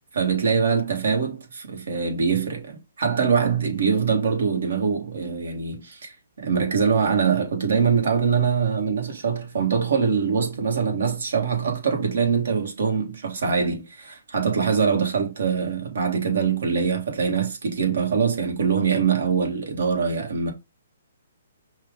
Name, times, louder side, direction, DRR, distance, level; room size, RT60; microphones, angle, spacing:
voice 1, 0.1-20.5, right 6 dB, 70° right, 1.7 m, -23 dB
5.5 x 2.5 x 3.6 m
hypercardioid pair, 145°, 0 cm